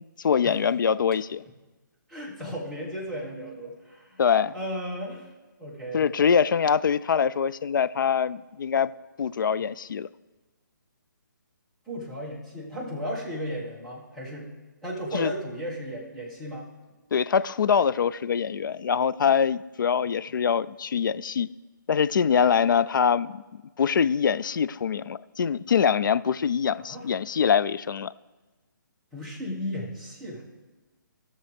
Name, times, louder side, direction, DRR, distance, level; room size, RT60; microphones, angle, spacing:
voice 1, 0.0-1.4 4.2-4.5 5.9-8.9 9.2-10.1 15.1-15.3 17.1-21.5 21.9-23.4 23.8-28.1, left 7 dB, 70° left, 17 dB, 0.4 m, -24 dB
voice 2, 2.1-4.2 4.5-5.3 5.6-6.1 11.9-14.5 14.8-16.7 26.8-27.1 29.1-30.4, equal, ahead, -8 dB, 1.5 m, -35 dB
16.5 x 6.7 x 3.4 m, 1.2 s
hypercardioid pair, 155°, 11 cm